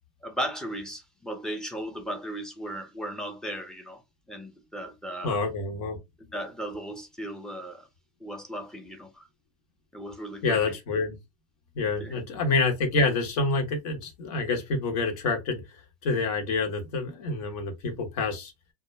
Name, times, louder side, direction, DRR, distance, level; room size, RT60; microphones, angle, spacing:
voice 1, 0.2-4.0 4.3-5.4 6.2-7.9 8.2-9.3 9.9-10.8 12.0-12.2, right 1 dB, 5° left, 0.5 m, -36 dB
voice 2, 5.2-6.0 10.4-11.2 11.7-15.6 16.0-18.5, left 3 dB, 60° left, 1.0 m, -27 dB
2.2 x 2.1 x 3.1 m
supercardioid pair, 130°, 21 cm